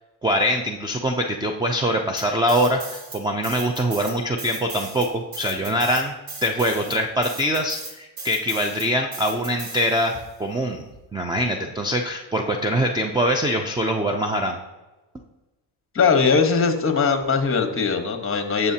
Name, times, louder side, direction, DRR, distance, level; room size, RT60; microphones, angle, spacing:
voice 1, 0.2-6.1 6.4-10.8 11.1-14.6, equal, 10° right, 3 dB, 0.5 m, -23 dB
sound 1, 2.2-3.2 3.4-10.3, right 3 dB, 45° right, 2.0 m, -37 dB
voice 2, 15.9-18.7, left 5 dB, 25° left, 6 dB, 1.3 m, -20 dB
14.0 x 6.7 x 2.8 m, 1.1 s
cardioid pair, 125°, 47 cm